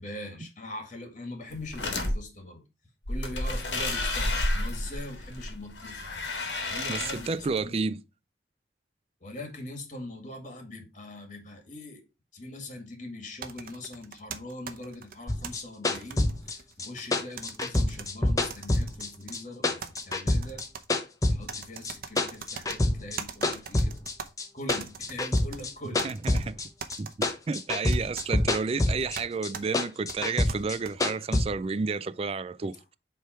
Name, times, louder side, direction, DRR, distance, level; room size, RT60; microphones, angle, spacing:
voice 1, 0.0-2.6 3.1-6.3 6.7-8.0 9.2-12.0 12.3-19.8 20.1-20.6 21.3-23.9 24.5-26.1, left 1 dB, 40° left, 1.9 m, -42 dB
sound 1, 1.5-2.1 3.0-7.6, left 2 dB, 85° left, 1.7 m, -31 dB
voice 2, 6.9-8.0 26.0-26.6 27.0-32.8, right 4 dB, 35° right, 0.3 m, -31 dB
sound 2, 13.4-15.5 16.0-17.1 17.4-18.1 18.5-19.4 19.8-20.9 21.5-22.8 23.2-24.3 24.7-25.6 26.0-26.5 26.8-27.3 27.9-28.3 29.2-29.3 29.5-29.7 30.1-30.9, right 6 dB, 55° right, 0.7 m, -41 dB
sound 3, 15.3-19.4 19.6-21.6 21.8-23.2 23.4-27.0 27.2-29.2 29.4-31.4, left 2 dB, 20° left, 0.7 m, -26 dB
7.7 x 3.4 x 4.4 m
head